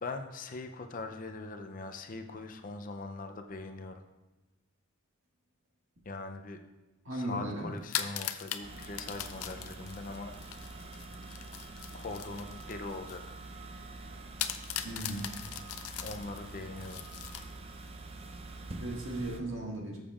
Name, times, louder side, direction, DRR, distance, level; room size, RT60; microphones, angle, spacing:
voice 1, 0.0-4.0 6.0-6.6 7.1-10.3 11.9-13.2 16.0-17.0, left 3 dB, 40° left, 6 dB, 0.5 m, -41 dB
voice 2, 7.1-7.7 14.8-15.3 18.8-20.0, right 1 dB, 60° right, -1 dB, 1.8 m, -36 dB
sound 1, 7.8-13.2 13.6-13.7 14.4-17.9, left 10 dB, 85° left, 0.5 m, -40 dB
sound 2, 8.6-19.4, right 2 dB, 25° right, 0.5 m, -46 dB
13.5 x 7.1 x 2.4 m, 1.2 s
head